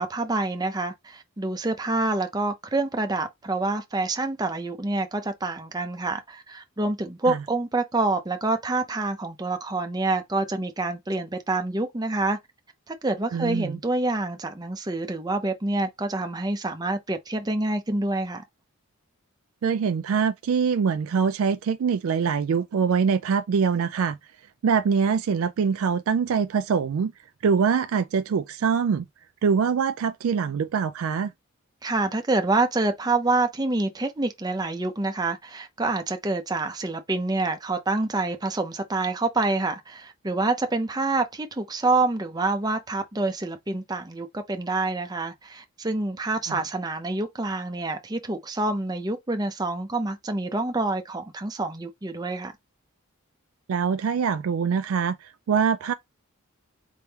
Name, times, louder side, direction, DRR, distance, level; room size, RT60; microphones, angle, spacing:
voice 1, 0.0-12.4 12.9-18.4 31.8-52.5, right 2 dB, 20° right, 0.6 m, -27 dB
voice 2, 13.3-13.8 19.6-24.2 24.6-27.1 27.4-29.1 29.4-31.3 46.5-46.6 53.7-55.9, right 6 dB, 75° right, 0.3 m, -24 dB
4.5 x 3.5 x 2.8 m
head